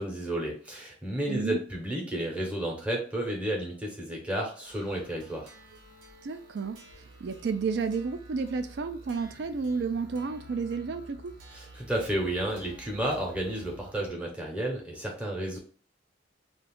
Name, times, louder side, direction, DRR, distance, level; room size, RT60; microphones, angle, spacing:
voice 1, 0.0-5.5 11.5-15.6, right 1 dB, 5° right, 0.7 m, -32 dB
voice 2, 1.3-1.6 6.2-6.8 7.2-11.3, right 5 dB, 60° right, 0.4 m, -31 dB
sound 1, 4.7-14.1, right 1 dB, 85° right, 0.8 m, -51 dB
2.5 x 2.3 x 3.5 m
head